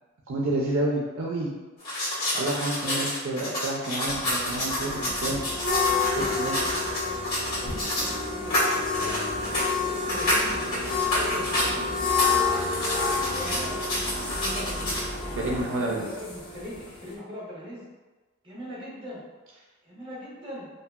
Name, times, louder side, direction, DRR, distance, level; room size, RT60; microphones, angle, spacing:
voice 1, 0.3-1.5 2.3-5.4 6.1-6.6 7.0-7.2 15.3-16.1, right 2 dB, 65° right, -2 dB, 0.4 m, -29 dB
sound 1, 1.8-8.2 8.4-11.7 12.0-15.1, left 1 dB, 85° left, 1.5 m, -29 dB
voice 2, 2.8-3.6 6.5-7.1 7.5-12.2 13.0-17.8 18.4-19.2 19.8-20.7, left 1 dB, 25° right, -6 dB, 0.9 m, -41 dB
sound 2, 4.0-15.6, equal, 25° left, 0.4 m, -39 dB
sound 3, 4.6-17.1, left 5 dB, 70° left, 0.6 m, -30 dB
2.7 x 2.6 x 2.3 m, 1.3 s
head